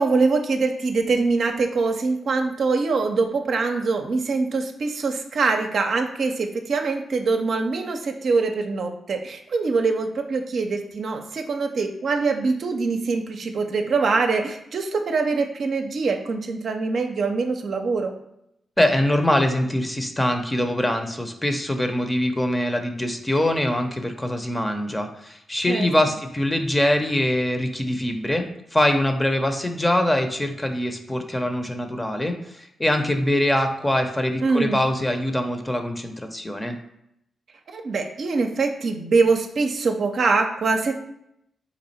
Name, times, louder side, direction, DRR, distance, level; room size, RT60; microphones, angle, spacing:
voice 1, 0.0-18.1 25.7-25.9 34.4-34.8 37.7-40.9, right 4 dB, 65° right, 4 dB, 0.5 m, -23 dB
voice 2, 18.8-36.8, left 1 dB, 20° left, 6 dB, 0.7 m, -23 dB
4.1 x 2.6 x 4.3 m, 0.78 s
supercardioid pair, 40°, 0 cm